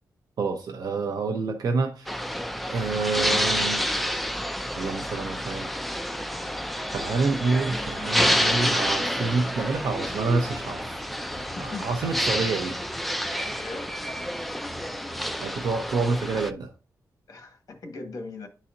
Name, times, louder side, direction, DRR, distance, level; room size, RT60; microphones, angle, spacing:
voice 1, 0.4-2.1 2.7-3.8 4.8-5.7 6.9-11.0 11.3-12.8 15.4-16.7, right 4 dB, 75° right, 0.8 m, -28 dB
sound 1, 2.1-16.5, equal, ahead, 0.4 m, -29 dB
voice 2, 11.4-12.2 13.5-14.0 17.3-18.5, left 3 dB, 60° left, 1.3 m, -40 dB
10.5 x 4.1 x 2.6 m
wide cardioid pair, 165°, 7 cm